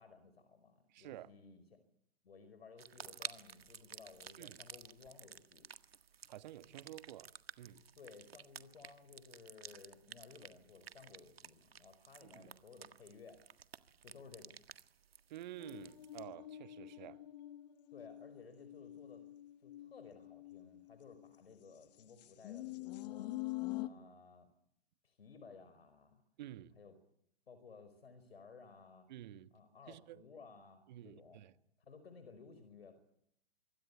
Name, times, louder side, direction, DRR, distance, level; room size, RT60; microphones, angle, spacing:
voice 1, 0.0-1.8 2.2-5.6 8.0-13.4 14.0-14.6 17.9-19.2 19.6-23.3 23.7-24.5 25.0-26.2 26.8-26.9 27.5-29.1 29.5-31.4 31.8-33.0, left 5 dB, 75° left, 4.8 m, -57 dB
voice 2, 0.9-1.3 4.4-4.6 6.3-7.8 12.2-12.5 15.3-17.2 26.4-26.8 29.1-29.5 29.9-30.2 30.9-31.5, right 13 dB, 45° right, 1.6 m, -51 dB
sound 1, 2.8-16.2, right 8 dB, 75° right, 1.8 m, -53 dB
sound 2, 15.6-21.4 22.0-23.9, left 17 dB, 45° left, 1.7 m, -46 dB
26.0 x 24.0 x 8.3 m
hypercardioid pair, 130°, 30 cm